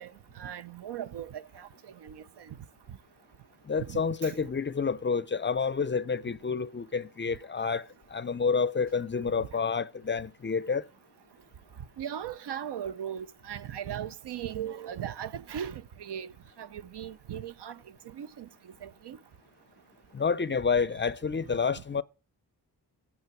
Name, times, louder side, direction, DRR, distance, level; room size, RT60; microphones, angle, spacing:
voice 1, 0.0-1.7 2.0-2.5 3.8-4.3 12.0-16.3 16.6-17.8 18.1-18.5 18.8-19.2, right 9 dB, 85° right, 0.7 m, -38 dB
voice 2, 3.7-10.8 20.1-22.0, left 5 dB, 30° left, 0.4 m, -29 dB
9.5 x 7.3 x 6.0 m
wide cardioid pair, 95°, 40 cm